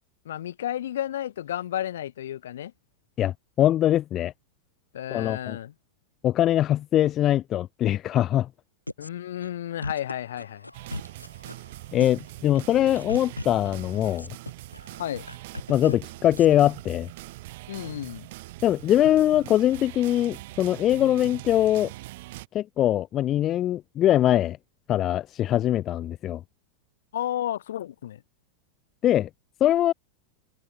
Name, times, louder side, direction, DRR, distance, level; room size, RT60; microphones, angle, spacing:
voice 1, 0.2-2.7 4.9-5.7 9.0-10.7 15.0-15.3 17.7-18.3 27.1-28.2, left 11 dB, 60° left, 1.4 m, -32 dB
voice 2, 3.2-4.3 5.1-5.6 6.2-8.5 11.9-14.3 15.7-17.1 18.6-21.9 22.5-24.6 24.9-26.4 29.0-29.3 29.6-29.9, left 12 dB, 30° left, 0.4 m, -22 dB
sound 1, 8.9-9.1 9.4-9.5 9.8-11.7 12.0-12.3 12.5-16.0 16.4-16.7, left 1 dB, 85° left, 1.0 m, -37 dB
sound 2, 10.7-22.5, right 19 dB, 50° right, 3.7 m, -42 dB
open air
figure-of-eight pair, 90°, 0 cm